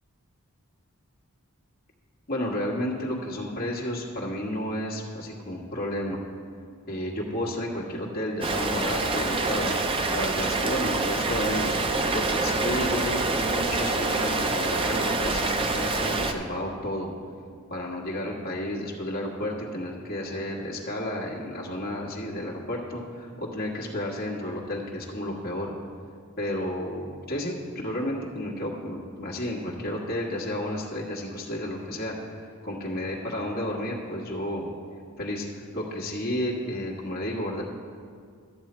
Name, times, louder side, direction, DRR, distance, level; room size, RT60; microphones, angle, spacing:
voice 1, 2.3-6.2 6.9-9.7 10.1-17.1 17.7-25.7 26.4-32.2 32.6-34.7 35.2-37.6, left 1 dB, 45° left, -3 dB, 1.5 m, -32 dB
Rain, 8.4-16.3, right 3 dB, 25° right, 0.5 m, -26 dB
12.5 x 7.3 x 4.4 m, 2.1 s
head